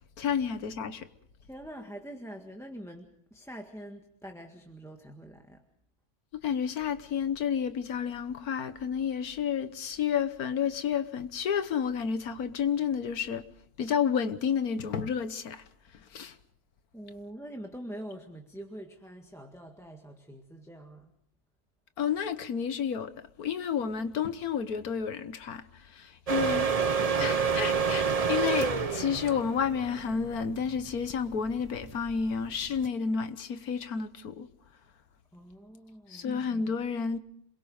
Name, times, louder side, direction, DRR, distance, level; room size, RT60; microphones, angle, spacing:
voice 1, 0.2-1.1 6.4-13.4 13.8-15.6 16.1-16.3 22.0-23.1 23.4-26.7 27.2-34.5 36.1-37.2, left 7 dB, 70° left, 1.6 m, -30 dB
voice 2, 1.4-5.6 16.9-21.1 35.3-36.5, right 1 dB, ahead, 1.6 m, -45 dB
sound 1, 26.3-32.9, right 6 dB, 30° right, 0.8 m, -29 dB
27.0 x 22.0 x 5.0 m
omnidirectional pair, 1.6 m